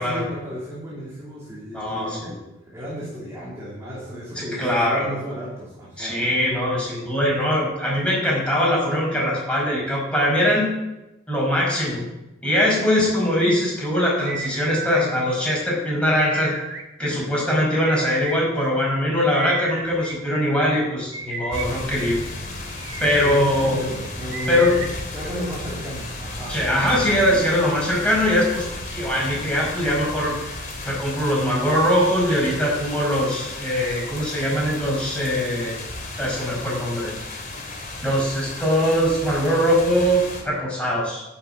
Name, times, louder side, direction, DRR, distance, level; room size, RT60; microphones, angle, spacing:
voice 1, 0.0-2.4 2.7-6.2 23.2-26.6, equal, 15° right, -6 dB, 2.9 m, -34 dB
voice 2, 1.7-2.4 4.4-5.1 6.0-10.7 11.3-12.1 12.4-16.6 17.0-22.2 23.0-23.8 24.5-24.8 26.5-30.3 30.8-35.7 36.2-37.1 38.0-41.2, equal, 5° left, -4 dB, 5.5 m, -22 dB
sound 1, 14.3-15.0 16.2-16.8 17.9-18.4 19.3-20.2 21.1-21.7 22.7-23.2 24.3-24.9, right 4 dB, 65° right, 2.1 m, -33 dB
sound 2, 21.5-40.4, left 2 dB, 45° left, 2.8 m, -34 dB
11.5 x 7.5 x 8.1 m, 1.0 s
head